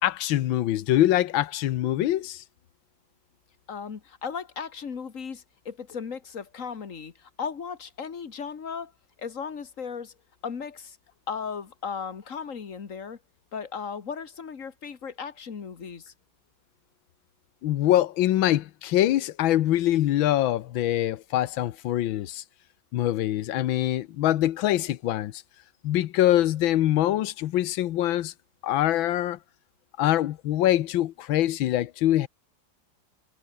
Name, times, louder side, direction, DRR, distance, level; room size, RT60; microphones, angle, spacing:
voice 1, 0.0-2.4 17.6-22.4 22.9-25.4 25.8-28.3 28.6-29.4 30.0-32.3, left 13 dB, 85° left, 1.6 m, -24 dB
voice 2, 3.7-8.9 9.2-10.1 10.4-11.0 11.3-13.2 13.5-16.1, left 6 dB, 45° left, 1.9 m, -36 dB
omnidirectional pair, 2.1 m